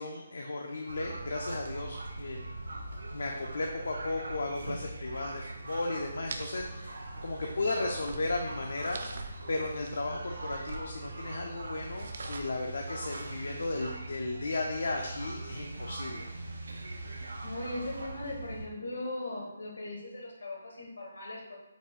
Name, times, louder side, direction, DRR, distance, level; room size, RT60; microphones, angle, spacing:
voice 1, 0.0-2.5 3.1-9.2 9.5-16.3, left 2 dB, 70° left, 1 dB, 0.4 m, -35 dB
sound 1, 0.9-18.7, right 2 dB, 85° right, 0.6 m, -41 dB
sound 2, 6.3-14.0, right 3 dB, 45° right, 0.3 m, -47 dB
voice 2, 17.4-21.6, left 1 dB, 85° left, -2 dB, 1.1 m, -39 dB
4.1 x 2.5 x 3.6 m, 1.0 s
hypercardioid pair, 175°, 0 cm